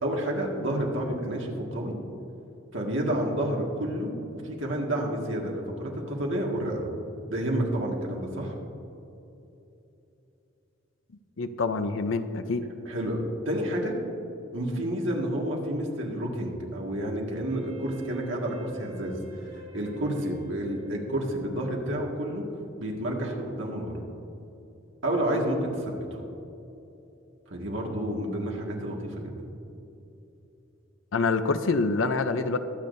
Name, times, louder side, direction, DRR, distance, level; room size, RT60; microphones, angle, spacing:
voice 1, 0.0-2.0 2.7-6.9 7.3-8.5 12.9-13.9 14.5-19.2 19.5-22.5 22.8-24.0 25.0-26.2 27.5-29.5, right 1 dB, 65° right, -1 dB, 1.9 m, -30 dB
voice 2, 11.4-12.6 31.1-32.6, left 3 dB, 70° left, 10 dB, 0.6 m, -26 dB
Wind instrument woodwind instrument, 17.5-21.7, right 1 dB, 35° right, 2.5 m, -48 dB
22.0 x 8.5 x 2.7 m, 2.9 s
head